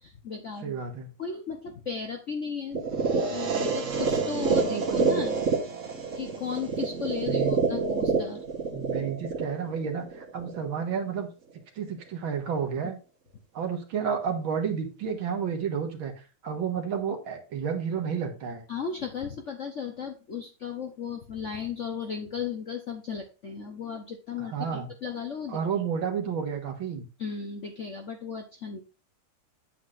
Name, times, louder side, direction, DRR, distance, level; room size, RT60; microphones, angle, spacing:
voice 1, 0.0-0.8 1.2-2.8 3.3-5.4 6.2-8.4 18.7-25.6 27.2-28.8, left 6 dB, 55° left, 3 dB, 0.8 m, -35 dB
voice 2, 0.6-1.1 4.5-5.2 7.2-7.6 8.7-11.3 11.8-13.0 13.5-16.1 16.4-18.6 24.4-24.9 25.5-27.1, right 7 dB, 65° right, 4 dB, 2.1 m, -31 dB
sound 1, 2.7-10.7, right 4 dB, 45° right, 1.3 m, -28 dB
8.4 x 8.1 x 2.5 m, 0.33 s
omnidirectional pair, 2.4 m